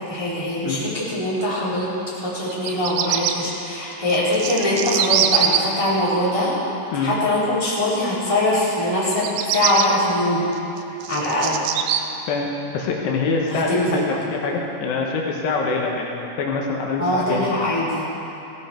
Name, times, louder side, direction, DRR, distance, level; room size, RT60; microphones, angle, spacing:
voice 1, 0.0-1.9 2.2-6.6 6.9-10.5 11.1-11.6 13.5-14.1 17.0-18.1, left 1 dB, 10° left, -9 dB, 3.4 m, -22 dB
Bird vocalization bird call bird song, 2.5-3.3 4.1-5.6 9.1-9.9 10.5-12.0, right 10 dB, 80° right, 2.3 m, -22 dB
voice 2, 12.7-17.5, left 4 dB, 80° left, 0 dB, 3.2 m, -24 dB
17.0 x 16.5 x 4.4 m, 2.9 s
omnidirectional pair, 4.9 m